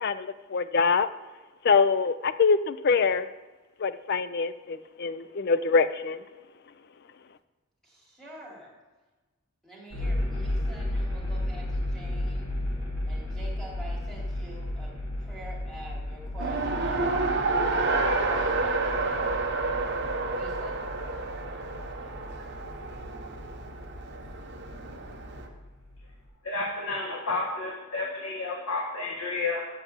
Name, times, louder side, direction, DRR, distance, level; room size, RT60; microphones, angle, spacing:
voice 1, 0.0-1.1 1.6-3.3 3.8-6.2, left 5 dB, 50° left, 13 dB, 0.4 m, -24 dB
voice 2, 7.8-8.7 9.6-12.4 13.1-19.4 20.3-20.8, right 1 dB, ahead, -5 dB, 2.8 m, -46 dB
sound 1, 9.9-26.2, left 1 dB, 70° left, 3.6 m, -34 dB
Race car auto racing, 16.4-25.5, right 3 dB, 55° right, 1.1 m, -29 dB
voice 3, 26.4-29.7, left 3 dB, 90° left, -2 dB, 1.5 m, -31 dB
7.8 x 6.0 x 7.9 m, 1.2 s
head